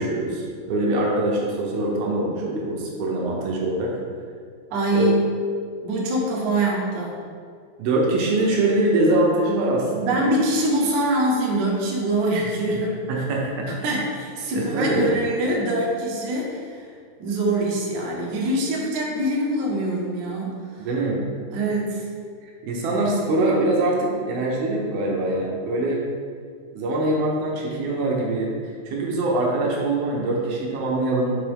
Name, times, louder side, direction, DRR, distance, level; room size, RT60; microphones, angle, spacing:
voice 1, 0.0-4.0 4.9-5.2 7.8-10.3 13.1-13.7 14.5-15.1 20.8-21.2 22.4-26.0 26.7-31.4, right 2 dB, 70° right, -2 dB, 2.5 m, -23 dB
voice 2, 4.7-5.2 5.8-7.1 10.0-13.0 13.6-16.8 17.2-20.6 21.5-22.0, right 1 dB, 90° right, -3 dB, 1.6 m, -24 dB
6.0 x 6.0 x 3.4 m, 2.1 s
omnidirectional pair, 5.2 m